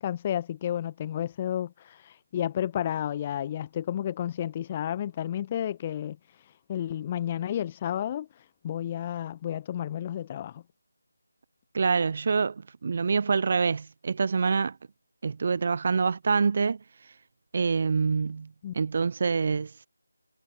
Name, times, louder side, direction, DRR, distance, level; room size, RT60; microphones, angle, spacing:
voice 1, 0.0-6.2 6.7-8.3 8.6-10.6 18.6-18.7, left 10 dB, 20° left, 1.2 m, -31 dB
voice 2, 11.7-14.8 15.2-16.8 17.5-18.5 18.7-19.7, right 5 dB, 35° right, 0.5 m, -26 dB
figure-of-eight pair, 160°, 0 cm